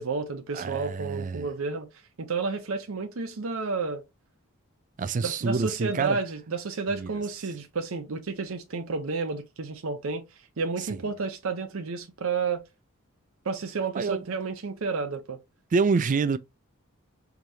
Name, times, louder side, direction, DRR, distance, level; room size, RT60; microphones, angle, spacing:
voice 1, 0.0-1.9 2.2-4.0 5.2-10.3 10.6-12.6 13.4-15.4, right 4 dB, 65° right, 0.7 m, -31 dB
voice 2, 0.5-1.5 5.0-6.2 6.9-7.1 10.8-11.0 13.9-14.2 15.7-16.4, right 4 dB, 35° right, 0.3 m, -27 dB
4.8 x 2.9 x 2.7 m
head